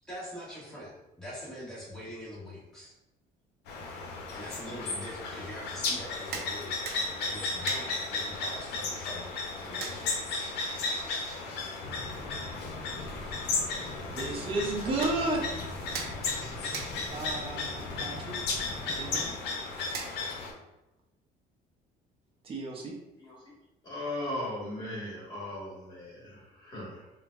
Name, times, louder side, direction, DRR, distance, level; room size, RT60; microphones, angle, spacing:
voice 1, 0.1-2.9 4.3-10.2, equal, 5° left, -7 dB, 1.3 m, -43 dB
sound 1, 3.7-20.5, left 3 dB, 80° left, 0.6 m, -35 dB
sound 2, 5.9-20.6, right 4 dB, 70° right, 0.6 m, -46 dB
sound 3, 11.8-19.4, left 2 dB, 50° left, 0.8 m, -43 dB
voice 2, 14.1-15.4 17.1-17.7 18.0-18.3 18.9-19.3 22.4-22.9, right 2 dB, 35° right, -1 dB, 0.6 m, -32 dB
voice 3, 23.2-23.5 23.8-27.1, left 1 dB, 25° left, -5 dB, 1.4 m, -38 dB
3.7 x 2.2 x 2.3 m, 0.95 s
cardioid pair, 110°, 17 cm